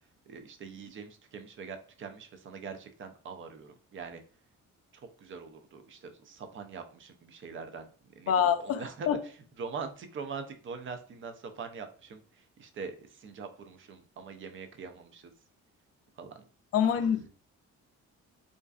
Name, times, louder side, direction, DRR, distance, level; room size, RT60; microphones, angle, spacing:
voice 1, 0.3-4.2 5.2-7.9 8.2-15.3 16.2-16.5 16.8-17.0, right 5 dB, 45° right, 0.4 m, -43 dB
voice 2, 8.3-8.8 9.1-9.2 16.7-17.3, left 8 dB, 50° left, 0.4 m, -25 dB
2.5 x 2.2 x 2.3 m
cardioid pair, 90°, 30 cm